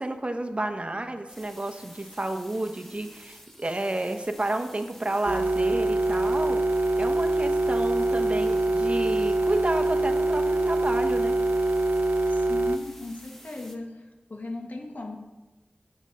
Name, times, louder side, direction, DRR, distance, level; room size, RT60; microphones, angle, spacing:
voice 1, 0.0-11.4, right 1 dB, 35° right, 5 dB, 0.9 m, -31 dB
sound 1, 1.3-13.8, equal, 10° left, 1.2 m, -50 dB
sound 2, 5.3-12.8, right 2 dB, 60° right, 0.5 m, -24 dB
voice 2, 12.3-14.0 14.3-15.2, left 2 dB, 55° left, 2 dB, 1.6 m, -37 dB
8.0 x 7.5 x 5.4 m, 1.1 s
cardioid pair, 45°, 3 cm